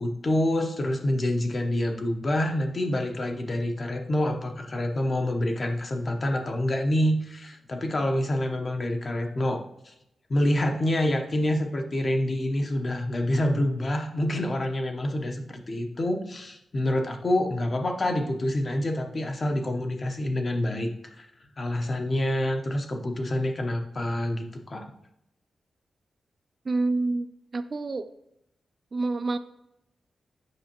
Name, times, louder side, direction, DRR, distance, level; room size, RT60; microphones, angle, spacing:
voice 1, 0.0-9.9 10.3-20.9 21.2-21.3 21.6-24.9, left 1 dB, 35° left, 4 dB, 0.9 m, -27 dB
voice 2, 26.7-27.3 27.5-28.1 28.9-29.4, right 3 dB, 40° right, 10 dB, 0.4 m, -27 dB
7.8 x 5.6 x 3.0 m, 0.80 s
wide cardioid pair, 125°, 0 cm